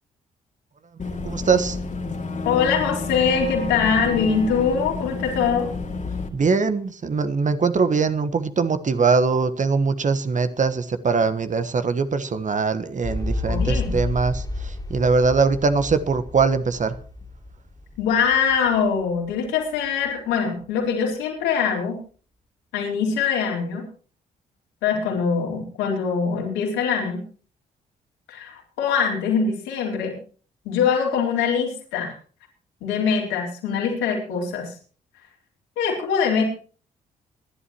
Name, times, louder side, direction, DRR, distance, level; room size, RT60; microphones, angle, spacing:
Boat Water vehicle / Engine, 1.0-6.3, left 3 dB, 35° left, 2.6 m, -30 dB
voice 1, 1.2-1.8 6.3-14.4 14.9-16.9, right 4 dB, 35° right, 11 dB, 1.3 m, -21 dB
voice 2, 2.4-5.7 13.4-14.0 18.0-22.0 22.7-23.9 24.8-27.2 28.3-30.1 30.6-32.1 32.8-34.7 35.8-36.4, left 6 dB, 75° left, 0 dB, 4.0 m, -23 dB
sound 1, 13.0-19.0 19.4-19.5, left 2 dB, 20° left, 3.0 m, -30 dB
26.0 x 11.0 x 3.0 m, 0.40 s
figure-of-eight pair, 40°, 21 cm